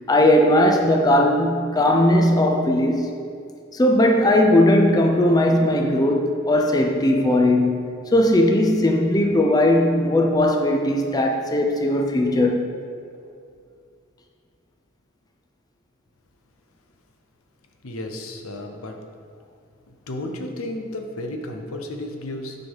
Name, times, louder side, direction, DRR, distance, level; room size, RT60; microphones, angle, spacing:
voice 1, 0.1-3.1 3.7-12.7, left 1 dB, 20° left, 2 dB, 0.5 m, -18 dB
voice 2, 17.8-19.0 19.9-22.6, left 1 dB, 80° left, 4 dB, 0.8 m, -33 dB
9.9 x 3.9 x 5.4 m, 2.3 s
head